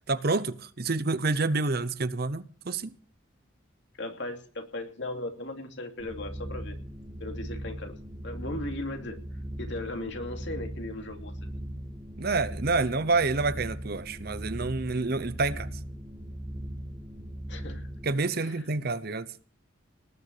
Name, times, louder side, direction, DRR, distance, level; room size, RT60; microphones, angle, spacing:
voice 1, 0.1-2.9 12.2-15.7 18.0-19.3, right 3 dB, 50° right, 0.9 m, -28 dB
voice 2, 4.0-6.8 7.2-8.0 8.2-9.2 9.6-11.4 17.5-17.9 18.3-18.6, left 2 dB, 60° left, 2.7 m, -37 dB
sound 1, 6.0-18.1, equal, 5° right, 2.5 m, -39 dB
19.0 x 7.0 x 8.3 m
head